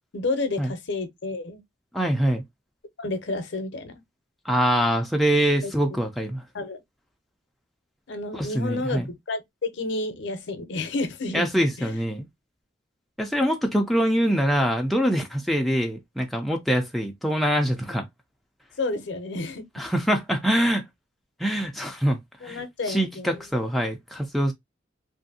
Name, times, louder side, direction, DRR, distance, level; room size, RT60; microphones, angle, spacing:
voice 1, 0.0-1.6 3.0-4.0 5.6-5.7 6.5-6.8 8.1-12.0 18.8-19.9 22.4-23.4, left 2 dB, 65° left, 0.6 m, -31 dB
voice 2, 1.9-2.4 4.5-6.4 8.3-9.1 11.3-12.3 13.2-18.1 19.8-20.8 21.4-22.6 22.9-24.5, equal, ahead, 0.4 m, -24 dB
2.7 x 2.5 x 2.6 m
head